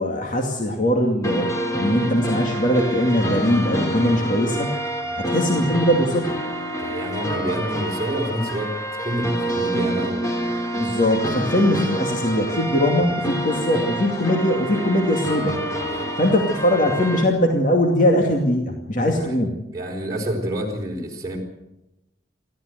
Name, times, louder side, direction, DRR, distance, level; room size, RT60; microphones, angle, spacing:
voice 1, 0.0-1.5 1.8-4.7 5.2-6.3 10.7-15.5 16.2-19.6, left 1 dB, 45° left, 1 dB, 2.4 m, -21 dB
sound 1, 1.2-17.2, right 1 dB, 20° left, 3.1 m, -27 dB
voice 2, 4.0-4.3 5.0-5.3 6.8-8.7 9.0-10.2 15.7-16.1 19.0-19.4 19.7-21.4, right 1 dB, 20° right, -2 dB, 4.4 m, -28 dB
29.0 x 13.0 x 8.1 m, 0.91 s
head